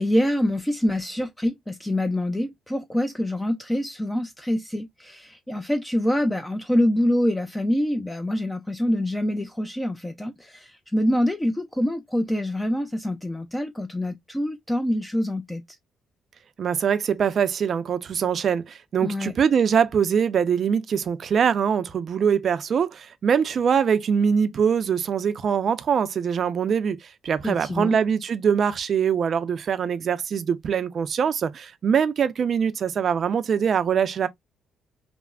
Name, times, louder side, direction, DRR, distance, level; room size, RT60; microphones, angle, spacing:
voice 1, 0.0-15.6 19.0-19.3 27.4-28.0, left 1 dB, 10° left, 0.4 m, -25 dB
voice 2, 16.6-27.0 27.2-34.3, right 7 dB, 55° right, 0.4 m, -23 dB
3.4 x 2.0 x 2.3 m
cardioid pair, 90°, 0 cm